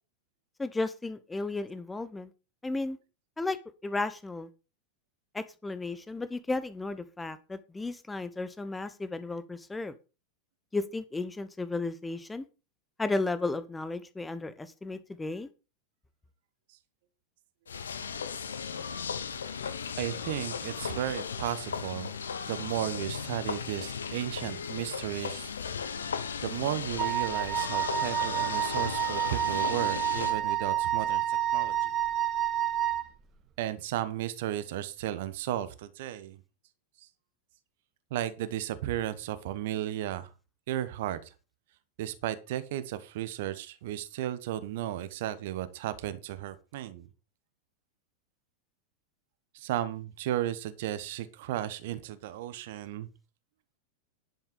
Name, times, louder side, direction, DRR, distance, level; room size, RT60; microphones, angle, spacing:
voice 1, 0.6-2.3 2.6-3.0 3.4-3.6 3.8-4.5 5.3-9.9 10.7-12.4 13.0-15.5, left 3 dB, 10° left, 14 dB, 0.9 m, -34 dB
sound 1, 17.7-30.3, left 6 dB, 70° left, 1.2 m, -36 dB
voice 2, 20.0-22.1 22.5-25.5 26.4-31.9 33.6-36.4 38.1-40.3 40.7-41.3 42.0-47.1 49.5-53.1, right 12 dB, 50° right, 14 dB, 1.2 m, -34 dB
Wind instrument woodwind instrument, 27.0-33.1, right 12 dB, 30° right, 1.2 m, -29 dB
11.0 x 7.1 x 5.3 m, 0.32 s
figure-of-eight pair, 90°, 0 cm